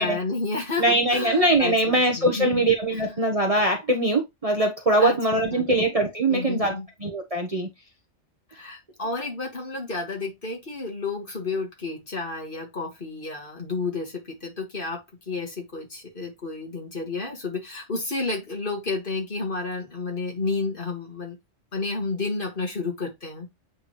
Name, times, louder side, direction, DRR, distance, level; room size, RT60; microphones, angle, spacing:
voice 1, 0.0-2.6 2.9-3.2 5.0-5.9 6.3-6.9 8.5-21.4 21.7-23.5, left 3 dB, 40° left, 2.2 m, -31 dB
voice 2, 0.8-6.7 7.0-7.7, right 1 dB, 30° right, 1.1 m, -22 dB
8.1 x 3.9 x 3.1 m
omnidirectional pair, 1.4 m